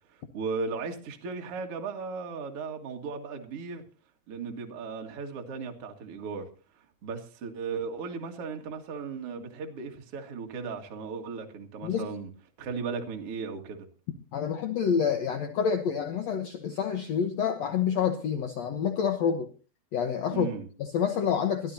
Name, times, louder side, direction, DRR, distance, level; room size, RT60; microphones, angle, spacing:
voice 1, 0.1-3.8 4.3-6.5 7.0-12.3 12.6-13.9 20.3-20.7, right 5 dB, 45° right, 2.3 m, -36 dB
voice 2, 14.3-19.5 19.9-20.5 20.8-21.7, left 7 dB, 75° left, 1.6 m, -28 dB
22.0 x 13.0 x 2.8 m
omnidirectional pair, 4.6 m